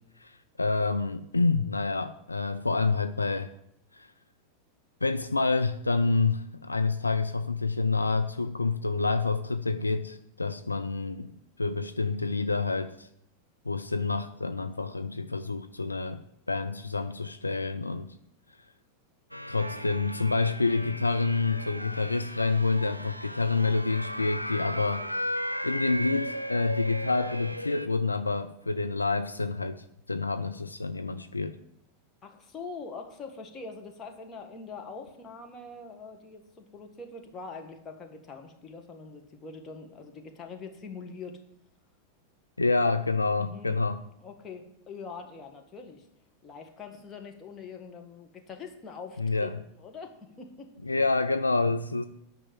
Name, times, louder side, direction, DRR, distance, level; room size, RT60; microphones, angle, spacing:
voice 1, 0.6-3.5 3.9-4.1 5.0-11.3 11.6-13.1 13.7-16.2 16.5-18.1 19.5-25.1 25.6-31.6 42.6-44.0 49.2-49.5 50.8-52.1, left 3 dB, 80° left, 10 dB, 0.4 m, -28 dB
sound 1, 19.3-27.9, equal, 90° right, 0.5 m, -36 dB
voice 2, 32.2-36.4 36.7-41.4 43.4-43.8 44.2-46.0 46.4-49.5 49.8-50.7, left 4 dB, 25° left, 4 dB, 1.7 m, -43 dB
9.1 x 5.9 x 7.5 m, 0.76 s
figure-of-eight pair, 90°, 0 cm